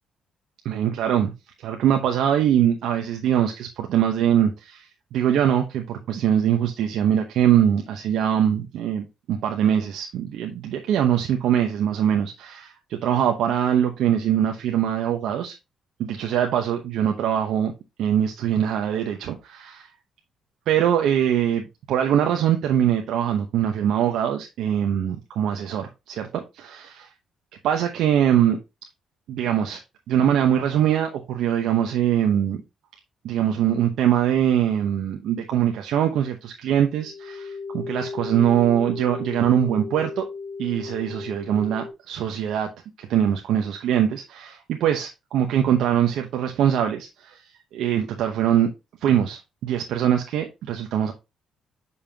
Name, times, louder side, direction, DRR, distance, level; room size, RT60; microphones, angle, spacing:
voice 1, 0.6-1.3 1.6-15.5 16.0-17.7 18.0-19.8 20.7-27.1 27.6-28.6 29.3-29.8 30.1-32.6 33.2-40.3 40.6-42.7 43.0-47.4 47.7-48.7 49.0-51.1, right 10 dB, 80° right, 0.8 m, -22 dB
sound 1, 37.0-41.9, left 4 dB, 85° left, 1.4 m, -35 dB
6.7 x 5.5 x 2.8 m
cardioid pair, 90°, 0 cm